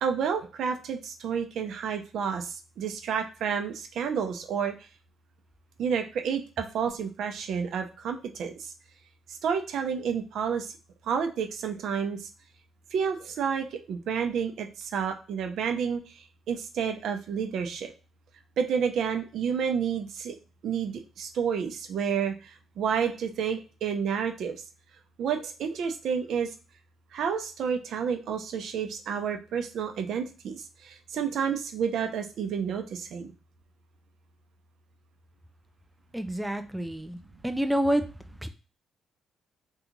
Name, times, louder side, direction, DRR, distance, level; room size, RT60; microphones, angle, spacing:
voice 1, 0.0-4.7 5.8-8.7 9.4-10.7 11.1-12.2 12.9-16.0 16.5-17.9 18.6-20.4 20.6-22.3 22.8-24.6 25.2-26.5 27.1-33.3, right 7 dB, 75° right, 5 dB, 0.6 m, -30 dB
voice 2, 36.1-38.1 38.4-38.5, equal, 5° right, 8 dB, 0.4 m, -28 dB
2.8 x 2.4 x 3.9 m, 0.34 s
cardioid pair, 90°, 0 cm